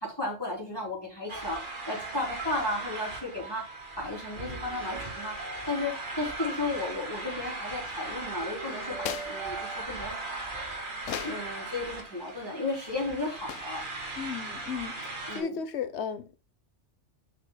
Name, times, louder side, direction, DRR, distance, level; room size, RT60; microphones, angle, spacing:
voice 1, 0.0-3.7 4.0-5.4 5.7-10.3 11.2-13.8 15.3-15.6, left 2 dB, 20° left, 3.5 m, -34 dB
sound 1, 1.3-15.4, right 2 dB, 40° right, 2.2 m, -38 dB
sound 2, 2.0-9.8, right 5 dB, 70° right, 1.6 m, -45 dB
sound 3, 8.9-9.4 11.0-11.5 13.5-13.8, left 10 dB, 90° left, 1.0 m, -36 dB
voice 2, 14.2-15.0 15.3-16.3, left 6 dB, 65° left, 1.1 m, -34 dB
11.5 x 5.7 x 2.2 m
omnidirectional pair, 1.3 m